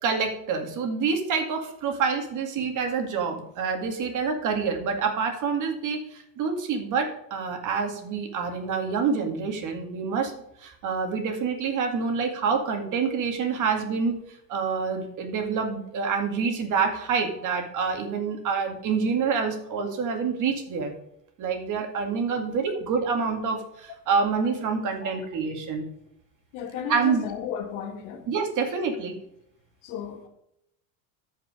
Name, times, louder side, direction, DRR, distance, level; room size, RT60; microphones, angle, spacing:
voice 1, 0.0-10.3 10.6-14.2 14.5-20.9 21.4-25.9 26.9-27.2 28.3-29.2, right 5 dB, 45° right, 2.1 m, -27 dB
voice 2, 26.5-28.2 29.8-30.3, left 8 dB, 90° left, 2.1 m, -34 dB
13.5 x 5.3 x 5.0 m
cardioid pair, 145°, 43 cm